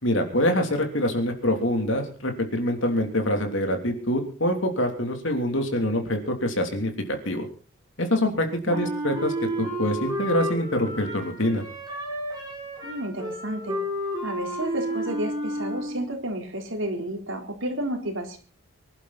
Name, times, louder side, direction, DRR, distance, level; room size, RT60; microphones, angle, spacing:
voice 1, 0.0-6.9 7.2-7.4 8.0-11.6, left 1 dB, 65° left, 5 dB, 3.2 m, -25 dB
Wind instrument woodwind instrument, 8.7-16.2, equal, 20° right, 6.2 m, -31 dB
voice 2, 12.8-13.8 14.2-18.4, right 1 dB, 70° right, 3 dB, 3.9 m, -31 dB
24.5 x 11.5 x 4.2 m, 0.39 s
head